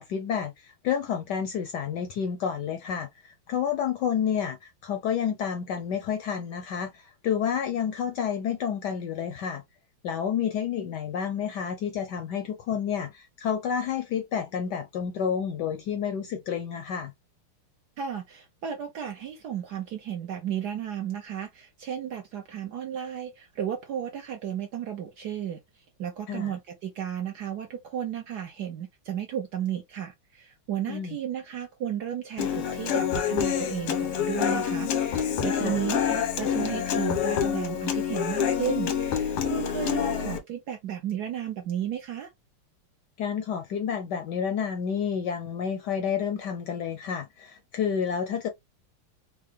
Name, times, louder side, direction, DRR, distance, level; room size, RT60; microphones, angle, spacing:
voice 1, 0.0-9.6 10.0-17.1 26.3-26.5 30.9-31.2 35.6-35.8 43.2-48.5, left 7 dB, 70° left, 1.0 m, -30 dB
voice 2, 18.0-25.6 26.0-42.3, right 9 dB, 70° right, 1.0 m, -34 dB
Human voice / Acoustic guitar, 32.4-40.4, left 8 dB, 90° left, 1.8 m, -27 dB
4.7 x 2.0 x 3.2 m
omnidirectional pair, 2.3 m